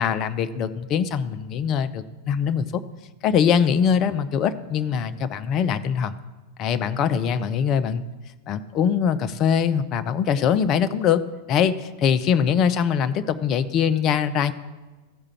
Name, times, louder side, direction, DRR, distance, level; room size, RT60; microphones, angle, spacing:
voice 1, 0.0-2.8 3.2-6.1 6.6-8.0 8.5-11.2 11.5-14.5, left 7 dB, 35° left, 11 dB, 0.4 m, -22 dB
14.5 x 4.9 x 4.2 m, 1.2 s
figure-of-eight pair, 90°, 0 cm